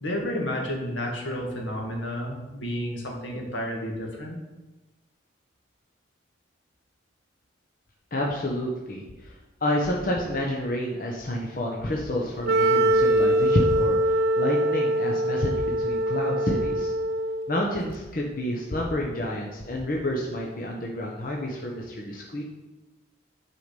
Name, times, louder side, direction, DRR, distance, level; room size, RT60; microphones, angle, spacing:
voice 1, 0.0-4.4, equal, 80° left, 0 dB, 1.9 m, -31 dB
voice 2, 8.1-9.3 9.6-16.9 17.5-22.4, left 1 dB, 45° left, -2 dB, 1.0 m, -29 dB
Wind instrument woodwind instrument, 12.4-17.6, right 1 dB, 50° right, 0.5 m, -23 dB
8.0 x 4.9 x 5.3 m, 1.1 s
head